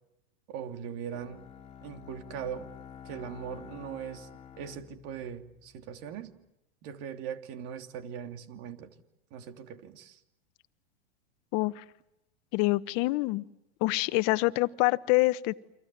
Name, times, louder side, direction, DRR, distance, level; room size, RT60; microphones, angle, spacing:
voice 1, 0.5-1.5 1.8-2.7 3.0-4.3 4.6-6.3 6.8-8.9 9.3-10.2, right 8 dB, 50° right, 6 dB, 3.0 m, -40 dB
Bowed string instrument, 1.1-6.1, left 8 dB, 20° left, 3.3 m, -49 dB
voice 2, 11.5-11.8 12.5-13.4 13.8-15.5, left 22 dB, 50° left, 15 dB, 1.2 m, -26 dB
29.5 x 25.5 x 7.6 m, 0.87 s
hypercardioid pair, 110°, 31 cm